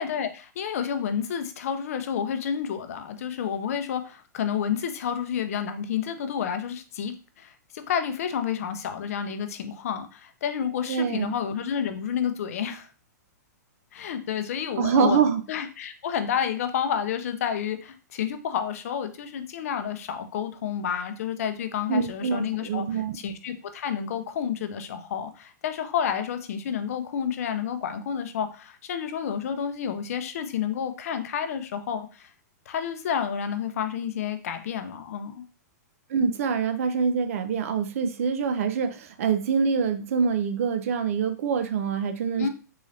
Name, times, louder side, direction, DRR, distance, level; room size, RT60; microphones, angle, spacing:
voice 1, 0.0-12.9 13.9-32.3 32.7-35.4 42.4-42.5, left 8 dB, 55° left, 8 dB, 0.5 m, -30 dB
voice 2, 10.9-11.3 14.8-15.4 21.9-23.2 36.1-42.5, right 6 dB, 50° right, 10 dB, 0.4 m, -25 dB
3.8 x 3.1 x 2.6 m, 0.35 s
hypercardioid pair, 165°, 10 cm